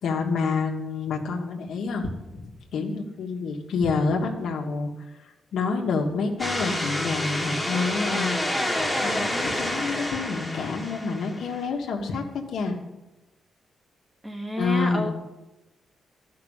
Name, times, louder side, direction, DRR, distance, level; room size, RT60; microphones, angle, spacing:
voice 1, 0.0-4.9 5.5-8.4 9.0-12.8 14.6-15.1, left 4 dB, 80° left, 2 dB, 1.5 m, -28 dB
sound 1, 6.4-11.6, left 1 dB, ahead, 1.3 m, -28 dB
voice 2, 14.2-15.1, equal, 15° right, 5 dB, 1.1 m, -30 dB
11.5 x 6.0 x 7.2 m, 1.0 s
wide cardioid pair, 140°, 0 cm